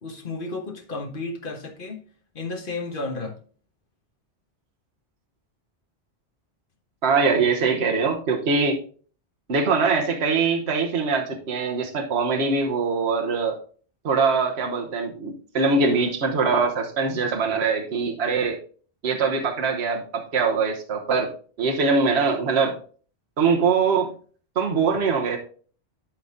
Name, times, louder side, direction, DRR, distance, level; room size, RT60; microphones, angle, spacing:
voice 1, 0.0-2.0 2.3-3.4, left 3 dB, 50° left, 1.4 m, -32 dB
voice 2, 7.0-8.8 9.5-13.6 14.0-18.6 19.0-21.3 21.6-22.8 23.4-24.1 24.6-25.4, right 4 dB, 65° right, 1.3 m, -22 dB
11.5 x 4.0 x 3.6 m
omnidirectional pair, 1.2 m